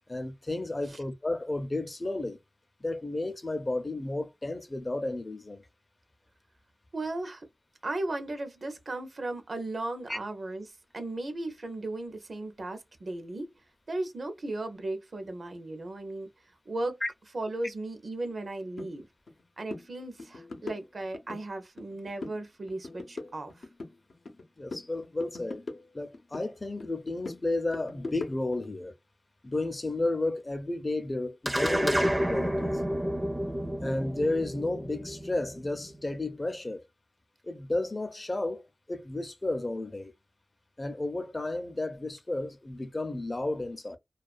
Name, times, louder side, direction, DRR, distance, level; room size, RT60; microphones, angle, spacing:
voice 1, 0.1-2.4 2.8-5.6 10.1-10.2 17.0-17.1 24.6-25.6 25.9-28.9 29.4-32.7 33.8-36.8 37.4-40.1 40.8-44.0, left 2 dB, 35° left, 0.5 m, -32 dB
voice 2, 6.9-7.5 7.8-13.5 13.9-16.3 16.7-17.0 17.3-19.1 19.6-23.7, right 2 dB, 70° right, 0.5 m, -36 dB
sound 1, 18.8-18.9 19.3-19.4 19.7-19.9 20.2-21.4 21.8-22.4 22.7-24.4 24.7-26.5 26.8-28.7, left 3 dB, 85° left, 0.6 m, -41 dB
sound 2, 31.5-36.1, equal, 20° right, 0.4 m, -30 dB
2.3 x 2.2 x 2.4 m
wide cardioid pair, 60°, 0 cm